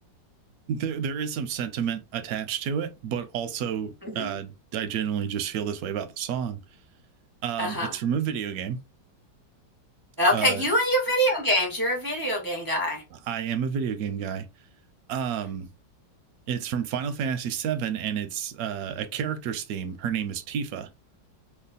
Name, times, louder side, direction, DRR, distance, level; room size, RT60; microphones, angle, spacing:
voice 1, 0.7-6.6 7.4-8.8 10.3-10.7 13.1-14.5 15.1-15.7 16.5-20.9, right 8 dB, 70° right, 0.9 m, -30 dB
voice 2, 4.0-4.3 7.6-7.9 10.2-13.0, equal, 35° right, 0.3 m, -24 dB
3.0 x 2.2 x 3.9 m
omnidirectional pair, 2.0 m